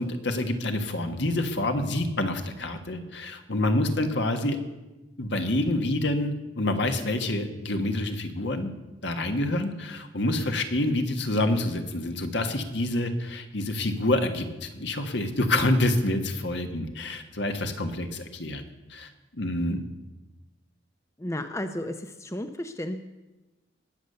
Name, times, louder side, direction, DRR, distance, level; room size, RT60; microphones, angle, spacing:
voice 1, 0.0-4.6 5.2-8.7 9.0-18.6 18.9-19.9, left 1 dB, 65° left, 6 dB, 1.5 m, -27 dB
voice 2, 21.2-23.1, left 1 dB, 15° left, 8 dB, 0.6 m, -33 dB
20.0 x 8.1 x 6.8 m, 1.1 s
head